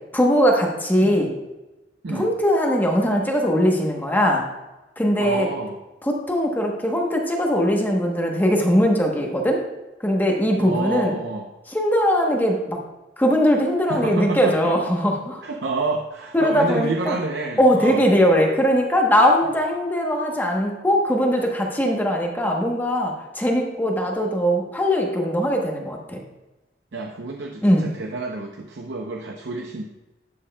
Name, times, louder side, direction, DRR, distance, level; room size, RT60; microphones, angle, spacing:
voice 1, 0.1-1.3 2.1-4.4 5.0-5.5 6.0-9.6 10.0-11.1 11.7-12.8 13.2-15.4 16.3-17.2 17.6-26.2 27.6-27.9, equal, 10° left, 0 dB, 1.0 m, -20 dB
voice 2, 5.2-5.8 10.6-11.5 13.9-14.7 15.4-18.0 26.9-29.8, right 3 dB, 75° right, 1 dB, 0.7 m, -28 dB
11.0 x 7.2 x 2.2 m, 1.1 s
head